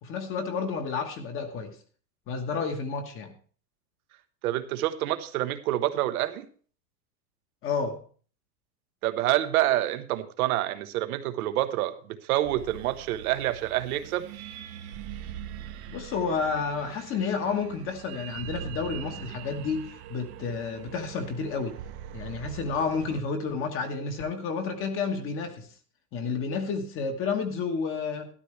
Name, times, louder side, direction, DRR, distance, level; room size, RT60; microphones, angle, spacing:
voice 1, 0.0-1.7 2.3-3.3 7.6-8.0 15.9-21.8 22.1-25.7 26.1-28.3, left 5 dB, 25° left, 1.3 m, -30 dB
voice 2, 4.4-6.5 9.0-14.3, right 14 dB, 65° right, 1.1 m, -27 dB
sound 1, 12.4-23.2, right 10 dB, 45° right, 1.0 m, -42 dB
12.5 x 11.5 x 3.3 m
supercardioid pair, 155°, 47 cm